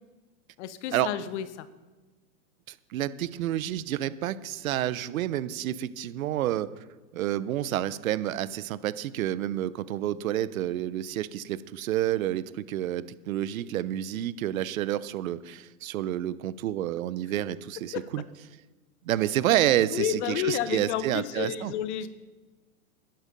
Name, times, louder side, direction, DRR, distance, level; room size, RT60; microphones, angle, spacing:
voice 1, 0.6-1.7 17.4-17.5 17.9-18.1 19.9-22.1, left 10 dB, 50° left, 14 dB, 1.1 m, -31 dB
voice 2, 2.7-6.7 7.1-18.2 19.0-21.7, right 12 dB, 65° right, 16 dB, 0.8 m, -29 dB
12.5 x 10.5 x 5.3 m, 1.2 s
hypercardioid pair, 130°, 43 cm